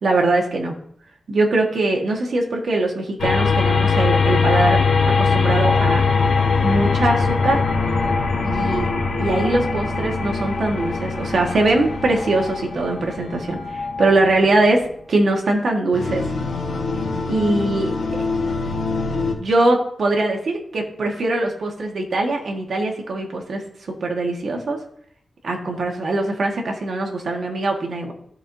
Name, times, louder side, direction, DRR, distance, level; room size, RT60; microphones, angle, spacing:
voice 1, 0.0-0.8 1.3-6.0 6.6-7.6 8.4-8.9 9.2-16.3 17.3-18.2 19.3-23.6 23.9-24.8 25.4-28.1, right 2 dB, 65° right, 1 dB, 1.6 m, -22 dB
sound 1, 3.2-14.7 15.9-19.3, left 4 dB, 85° left, 1.4 m, -21 dB
13.5 x 4.8 x 2.8 m, 0.64 s
wide cardioid pair, 100°, 0 cm